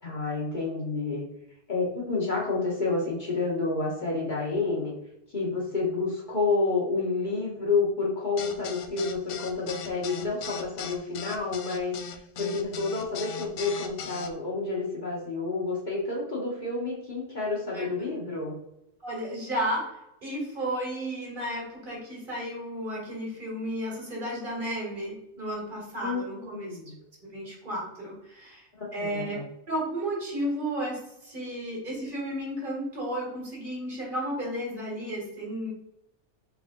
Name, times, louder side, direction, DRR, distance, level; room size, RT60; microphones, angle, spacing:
voice 1, 0.0-1.2 1.7-4.9 5.3-18.6 26.0-26.9 28.8-29.4, left 3 dB, 40° left, -4 dB, 1.2 m, -29 dB
sound 1, 8.4-14.3, left 7 dB, 80° left, 0.9 m, -38 dB
voice 2, 19.0-26.7 27.2-28.7 28.9-29.4 29.7-35.7, equal, 45° right, -4 dB, 1.9 m, -33 dB
3.5 x 3.4 x 3.6 m, 0.82 s
omnidirectional pair, 1.2 m